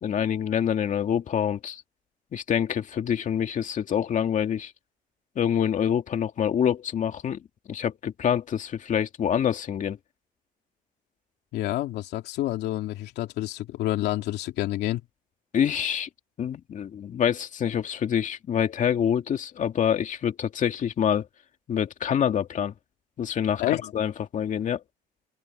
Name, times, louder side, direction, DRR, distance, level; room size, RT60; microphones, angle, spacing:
voice 1, 0.0-1.8 2.3-4.7 5.4-7.4 7.7-10.0 15.5-16.1 16.4-21.3 21.7-22.7 23.2-24.8, left 8 dB, 50° left, 2.2 m, -26 dB
voice 2, 11.5-15.0 23.6-23.9, left 15 dB, 80° left, 2.8 m, -28 dB
cardioid pair, 110°, 17 cm